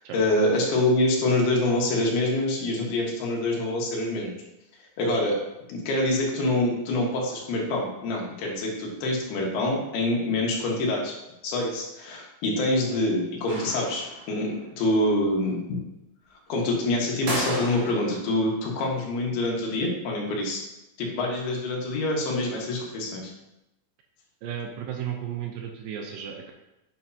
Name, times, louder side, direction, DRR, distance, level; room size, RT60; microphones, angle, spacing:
voice 1, 0.1-4.3 5.0-5.4 5.7-11.1 11.4-15.6 16.5-20.6 21.0-23.3, left 1 dB, 80° left, -2 dB, 3.5 m, -26 dB
sound 1, 13.5-14.4 17.3-18.3, right 1 dB, 55° right, 2.4 m, -32 dB
voice 2, 24.4-26.5, right 9 dB, 75° right, 3 dB, 2.2 m, -34 dB
9.0 x 6.9 x 2.8 m, 0.91 s
omnidirectional pair, 4.4 m